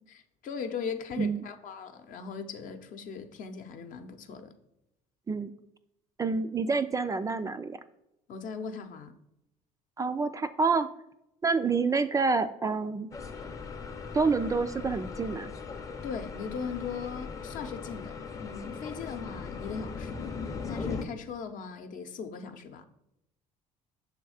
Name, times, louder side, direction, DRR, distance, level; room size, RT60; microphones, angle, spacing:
voice 1, 0.4-4.5 8.3-9.1 16.0-20.3 20.7-22.8, left 6 dB, 55° left, 0.7 m, -39 dB
voice 2, 6.2-7.8 10.0-10.9 11.4-13.1 14.1-15.5, right 4 dB, 20° right, 0.3 m, -28 dB
sound 1, 13.1-21.0, left 5 dB, 20° left, 0.6 m, -39 dB
6.2 x 3.5 x 4.8 m
supercardioid pair, 85°, 16 cm